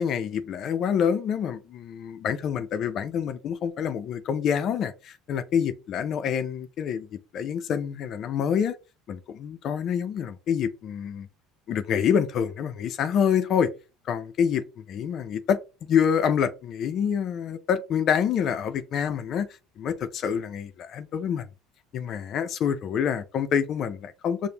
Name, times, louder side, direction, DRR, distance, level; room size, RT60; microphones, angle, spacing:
voice 1, 0.0-7.1 7.3-8.8 9.1-11.3 11.7-13.7 14.1-19.5 19.8-21.5 21.9-24.5, left 8 dB, 50° left, 0.4 m, -27 dB
5.0 x 2.0 x 2.8 m
supercardioid pair, 115°, 0 cm